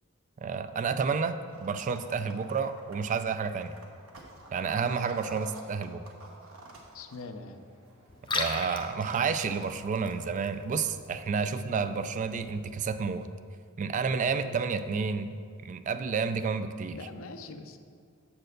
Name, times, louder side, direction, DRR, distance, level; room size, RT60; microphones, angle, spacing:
voice 1, 0.4-3.7 4.5-6.0 8.3-13.3 13.8-15.4 15.6-17.0, right 5 dB, 35° right, 11 dB, 0.3 m, -30 dB
sound 1, 1.5-10.3, right 2 dB, 75° right, 1.1 m, -50 dB
voice 2, 6.9-7.7 11.4-11.5 11.8-11.9 14.4-14.6 16.9-17.8, left 3 dB, 75° left, 7 dB, 0.6 m, -43 dB
Liquid, 8.1-13.1, left 3 dB, 25° left, 0.5 m, -39 dB
7.4 x 4.4 x 6.4 m, 2.1 s
head